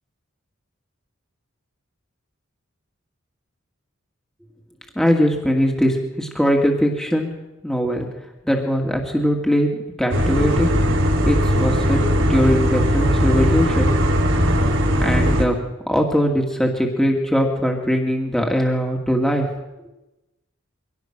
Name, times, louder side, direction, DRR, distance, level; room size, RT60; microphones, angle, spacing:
voice 1, 5.0-7.3 7.6-8.1 8.4-9.7 10.0-10.7 11.2-14.0 15.0-15.6 15.9-19.5, equal, 5° left, 1 dB, 2.2 m, -20 dB
sound 1, 10.1-15.5, equal, 80° right, 4.6 m, -18 dB
24.5 x 18.0 x 6.1 m, 1.0 s
head